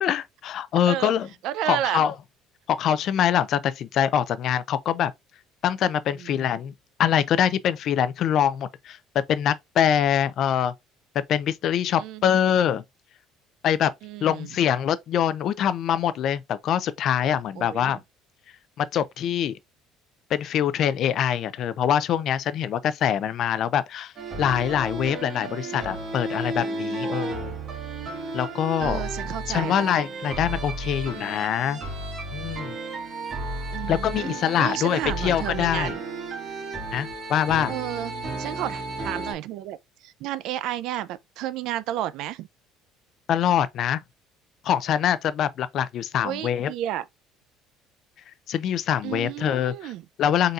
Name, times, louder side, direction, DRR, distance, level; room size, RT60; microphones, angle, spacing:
voice 1, 0.0-1.3 1.7-2.1 2.7-5.1 5.6-6.7 7.0-9.0 9.3-10.7 11.1-12.8 13.6-13.9 14.2-18.0 18.8-19.6 20.3-24.1 24.4-27.6 28.3-29.0 29.5-31.8 32.3-32.8 33.9-35.9 36.9-37.7 43.3-44.0 44.6-46.7 48.5-49.9 50.2-50.5, left 9 dB, 50° left, 0.4 m, -24 dB
voice 2, 1.4-2.0 6.2-6.5 12.0-12.3 14.0-14.5 17.6-17.9 28.8-29.8 33.7-36.0 37.7-38.1 38.4-39.8 40.0-42.5 46.2-47.0 49.0-50.0, right 12 dB, 65° right, 0.4 m, -32 dB
sound 1, 24.2-39.3, right 2 dB, 35° right, 1.7 m, -33 dB
4.0 x 3.8 x 2.4 m
cardioid pair, 150°, 0 cm